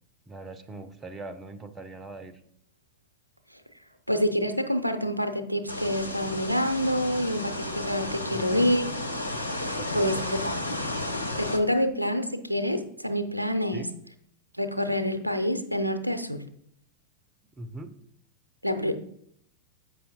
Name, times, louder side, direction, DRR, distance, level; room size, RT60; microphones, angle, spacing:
voice 1, 0.3-2.4 8.3-8.7 9.8-10.3 13.7-13.9 17.6-18.0, right 2 dB, 15° right, 11 dB, 0.7 m, -41 dB
voice 2, 4.1-8.8 9.6-10.2 10.4-10.6 11.4-13.9 14.6-16.4 18.6-18.9, equal, 90° right, 9 dB, 0.6 m, -27 dB
sound 1, 5.7-11.6, left 2 dB, 80° left, 0.8 m, -33 dB
8.2 x 5.5 x 4.4 m, 0.68 s
figure-of-eight pair, 90°, 0 cm